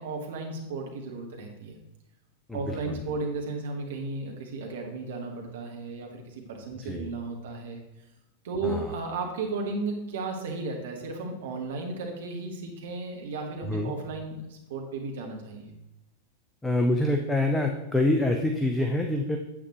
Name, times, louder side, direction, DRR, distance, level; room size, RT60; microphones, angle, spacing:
voice 1, 0.0-1.8 2.5-7.8 8.4-15.7, right 3 dB, 60° right, 1 dB, 1.4 m, -34 dB
voice 2, 2.5-3.0 6.8-7.1 8.6-8.9 13.6-13.9 16.6-19.4, left 1 dB, 5° left, 3 dB, 0.8 m, -26 dB
9.8 x 8.1 x 3.0 m, 0.94 s
figure-of-eight pair, 90°, 0 cm